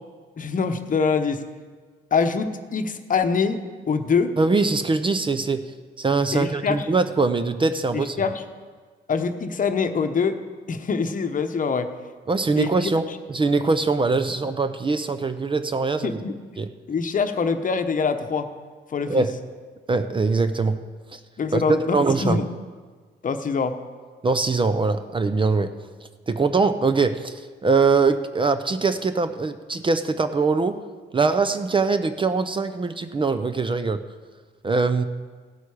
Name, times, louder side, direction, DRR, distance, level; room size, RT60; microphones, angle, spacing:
voice 1, 0.4-1.4 2.1-3.6 3.9-4.3 6.3-6.9 7.9-8.4 9.1-10.4 10.7-11.9 12.6-12.7 13.1-13.2 16.0-16.3 16.9-18.5 18.9-19.3 21.4-22.5 23.2-23.8, left 5 dB, 40° left, 8 dB, 0.9 m, -24 dB
voice 2, 4.4-5.7 6.0-8.2 12.3-16.2 16.6-16.7 19.1-19.4 19.9-20.8 21.1-21.2 21.5-21.6 21.9-22.4 24.2-25.7 26.3-30.8 31.1-34.0 34.6-35.0, right 4 dB, 25° right, 10 dB, 0.6 m, -22 dB
16.0 x 8.2 x 4.9 m, 1.5 s
cardioid pair, 90°, 20 cm